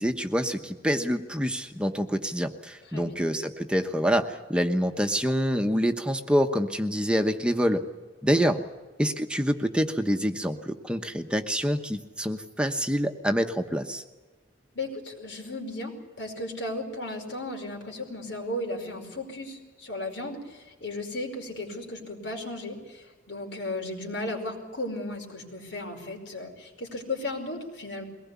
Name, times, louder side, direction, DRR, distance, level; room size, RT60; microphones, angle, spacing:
voice 1, 0.0-7.8 8.2-8.6 9.0-14.0, equal, 5° right, 5 dB, 1.0 m, -26 dB
voice 2, 14.7-28.0, left 2 dB, 90° left, 2 dB, 5.1 m, -35 dB
22.5 x 19.5 x 8.4 m, 1.3 s
head